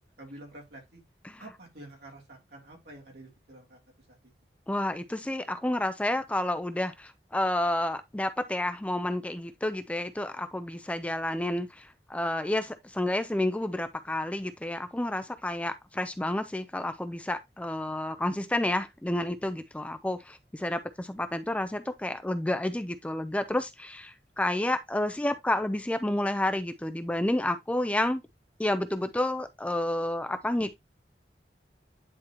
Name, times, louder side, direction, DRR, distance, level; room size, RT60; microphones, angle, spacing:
voice 1, 0.2-1.0 1.4-3.8 4.1-4.2, right 1 dB, 70° right, 3.0 m, -48 dB
voice 2, 4.7-28.2 28.6-30.8, left 1 dB, 5° left, 0.4 m, -30 dB
9.8 x 4.3 x 2.9 m
head